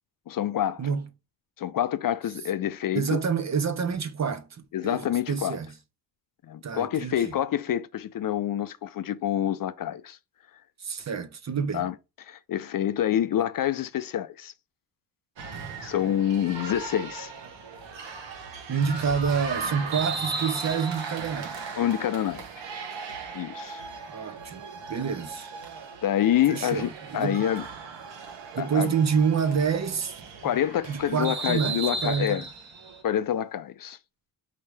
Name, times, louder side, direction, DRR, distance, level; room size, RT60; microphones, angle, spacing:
voice 1, 0.3-0.8 1.6-3.2 4.7-5.6 6.4-10.2 11.7-11.9 12.3-14.5 15.8-17.3 21.8-22.4 23.3-23.9 26.0-27.6 28.6-28.9 30.4-32.4 33.0-34.0, left 11 dB, 50° left, 0.5 m, -27 dB
voice 2, 2.9-5.7 6.6-7.3 10.8-11.9 18.7-21.6 24.1-24.6 24.9-25.5 26.5-27.5 28.5-30.2 30.9-32.5, right 6 dB, 40° right, 0.7 m, -28 dB
sound 1, 15.4-33.0, right 4 dB, 80° right, 1.2 m, -37 dB
4.8 x 2.7 x 3.3 m
cardioid pair, 115°, 43 cm